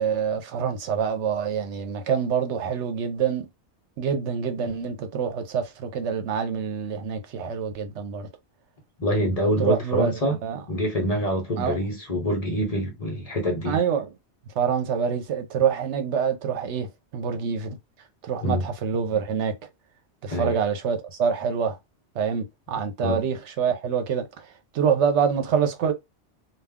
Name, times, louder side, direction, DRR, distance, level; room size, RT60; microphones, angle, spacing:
voice 1, 0.0-3.5 4.0-8.3 9.6-10.1 10.4-10.6 11.6-11.8 13.6-14.1 14.6-16.9 17.1-17.8 18.3-19.5 20.2-21.7 22.2-24.2 24.7-25.9, right 7 dB, 80° right, 1.0 m, -26 dB
voice 2, 9.0-10.4 10.7-13.8 18.4-18.7 20.3-20.6 23.0-23.3, equal, 40° left, 0.7 m, -25 dB
2.3 x 2.3 x 3.5 m
omnidirectional pair, 1.2 m